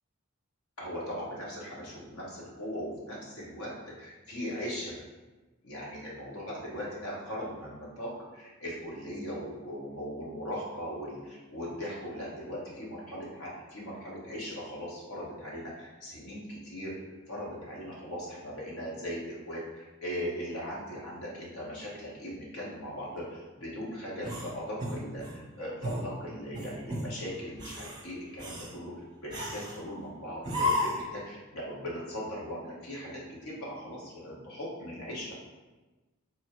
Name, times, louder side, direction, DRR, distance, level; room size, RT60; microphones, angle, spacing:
voice 1, 0.8-5.0 5.6-17.0 17.3-28.9 29.2-35.3, equal, 75° left, -5 dB, 1.3 m, -39 dB
sound 1, 24.2-25.4 25.8-26.1 26.5-27.1 27.5-28.0 28.4-28.7 29.3-29.8 30.4-31.1, left 1 dB, 20° right, 0.7 m, -33 dB
4.4 x 2.1 x 4.3 m, 1.2 s
head